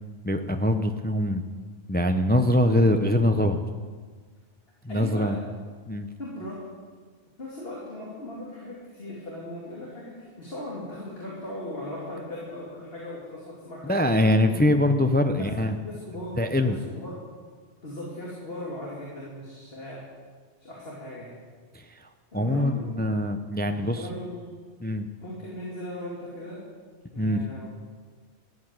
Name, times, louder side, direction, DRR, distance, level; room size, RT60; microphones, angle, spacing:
voice 1, 0.2-1.4 1.9-3.6 4.8-5.4 5.9-6.1 13.9-15.8 16.4-16.8 21.7-21.8 22.3-24.0 24.8-25.1 27.2-27.4, left 1 dB, 10° left, 7 dB, 0.6 m, -23 dB
voice 2, 4.9-5.4 6.2-6.6 7.4-14.5 15.3-15.5 15.8-17.2 17.8-20.0 20.6-21.3 22.3-22.9 23.7-24.5 25.2-26.6 27.1-27.7, left 1 dB, 60° left, -5 dB, 3.1 m, -38 dB
14.5 x 8.6 x 9.1 m, 1.5 s
omnidirectional pair, 1.1 m